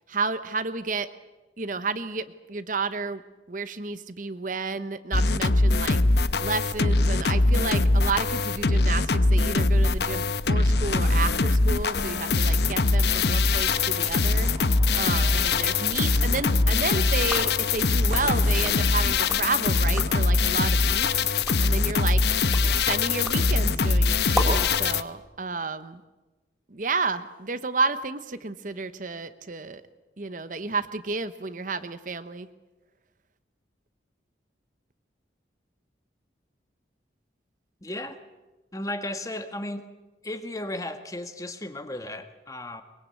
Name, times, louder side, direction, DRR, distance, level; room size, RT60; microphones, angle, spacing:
voice 1, 0.1-1.1 1.6-3.2 3.5-6.0 6.4-14.5 14.9-21.3 21.6-22.2 22.7-26.0 26.7-29.8 30.2-32.5, right 4 dB, 45° right, 12 dB, 0.9 m, -31 dB
sound 1, 5.1-25.0, left 3 dB, 60° left, 0.8 m, -22 dB
sound 2, 10.4-19.3, right 1 dB, 25° right, 1.8 m, -44 dB
sound 3, 17.2-19.5 19.8-20.3 20.8-24.8, equal, ahead, 3.9 m, -36 dB
voice 2, 37.8-38.2 38.7-39.8 40.2-42.8, left 1 dB, 20° left, 8 dB, 1.4 m, -34 dB
23.0 x 22.0 x 8.3 m, 1.2 s
head